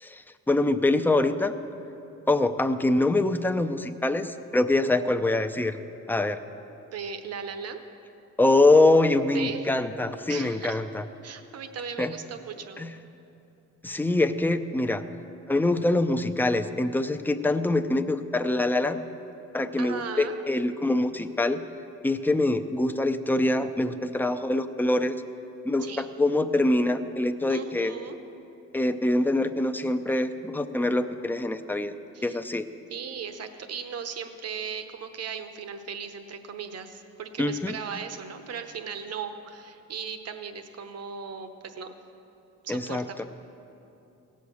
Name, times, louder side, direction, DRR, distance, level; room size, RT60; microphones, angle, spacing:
voice 1, 0.0-1.6 2.3-5.8 6.1-6.4 8.4-11.0 12.0-12.1 12.8-12.9 13.8-15.0 15.5-19.0 19.5-21.6 22.0-25.1 25.6-27.9 28.7-31.9 32.2-32.7 37.4-37.8 42.7-43.0, left 2 dB, 5° left, 8 dB, 0.5 m, -24 dB
voice 2, 6.9-7.8 9.3-9.7 10.3-10.8 11.2-12.9 19.8-20.4 25.8-26.1 27.5-28.2 32.1-32.4 32.9-41.9 42.6-43.2, right 6 dB, 55° right, 8 dB, 1.0 m, -37 dB
16.5 x 6.5 x 7.1 m, 2.9 s
cardioid pair, 90°, 30 cm